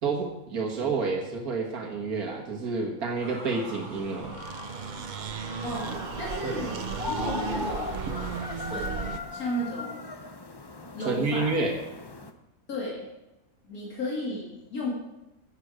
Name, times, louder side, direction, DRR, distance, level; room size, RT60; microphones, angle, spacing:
voice 1, 0.0-4.4 6.4-6.6 11.0-11.7, right 4 dB, 90° right, 1 dB, 1.9 m, -29 dB
sound 1, 3.2-8.4, left 1 dB, 60° left, 4.1 m, -43 dB
sound 2, 3.3-9.2, right 6 dB, 55° right, 0.5 m, -36 dB
voice 2, 5.6-8.0 8.5-10.1 10.9-11.5 12.7-13.1 13.6-14.9, left 1 dB, 80° left, -3 dB, 2.9 m, -34 dB
sound 3, 5.7-12.3, left 3 dB, 25° left, 0.5 m, -38 dB
14.0 x 8.9 x 4.9 m, 0.96 s
omnidirectional pair, 1.5 m